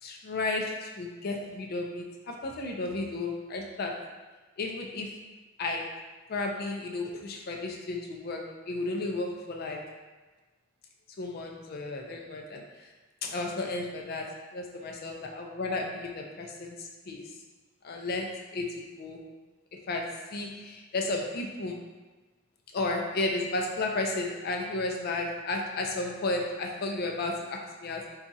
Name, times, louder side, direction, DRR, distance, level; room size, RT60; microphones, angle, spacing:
voice 1, 0.0-3.9 4.6-5.1 5.6-5.8 6.3-9.8 11.2-12.9 13.2-14.3 14.5-17.2 17.8-19.2 19.9-20.0 20.3-21.8 22.7-28.0, left 2 dB, 50° left, 1 dB, 0.4 m, -33 dB
3.9 x 2.4 x 2.6 m, 1.3 s
head